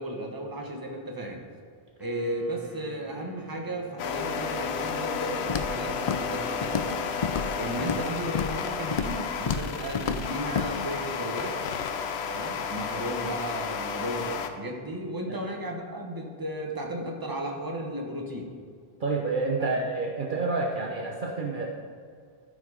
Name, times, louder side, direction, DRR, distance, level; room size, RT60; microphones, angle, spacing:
voice 1, 0.0-1.4 2.0-6.9 7.6-11.6 12.3-18.5 19.6-19.8, right 1 dB, 20° right, 1 dB, 1.2 m, -34 dB
sound 1, 2.0-5.3, right 3 dB, ahead, 1.3 m, -50 dB
sound 2, 4.0-14.5, left 6 dB, 80° left, 0.9 m, -32 dB
Walk footsteps, 5.5-5.8 6.1-6.4 6.6-7.0 7.2-8.1 8.3-8.6 8.9-9.2 9.5-9.7 9.9-10.2 10.5-10.7, left 6 dB, 50° left, 0.5 m, -29 dB
voice 2, 19.0-21.7, right 3 dB, 55° right, 0 dB, 0.9 m, -28 dB
13.5 x 5.4 x 5.0 m, 2.2 s
omnidirectional pair, 1.1 m